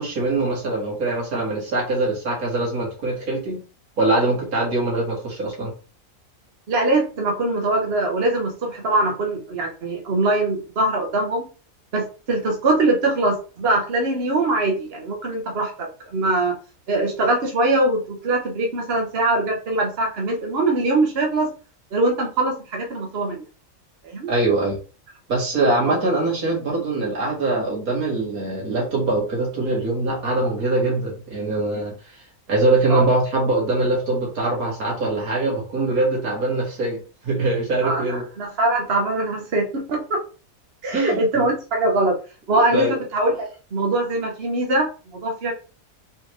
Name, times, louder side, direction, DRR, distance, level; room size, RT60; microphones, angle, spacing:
voice 1, 0.0-3.6 4.0-5.7 24.3-24.8 25.3-31.9 32.5-38.3 40.9-41.5 42.5-42.9, right 2 dB, 85° right, -1 dB, 2.3 m, -23 dB
voice 2, 6.7-11.5 11.9-16.5 16.9-21.5 21.9-23.4 24.0-24.3 25.9-26.0 32.9-33.1 37.8-40.2 40.8-42.2 42.5-45.5, right 2 dB, 45° right, 1 dB, 1.2 m, -22 dB
4.3 x 3.5 x 3.1 m, 0.35 s
omnidirectional pair, 1.5 m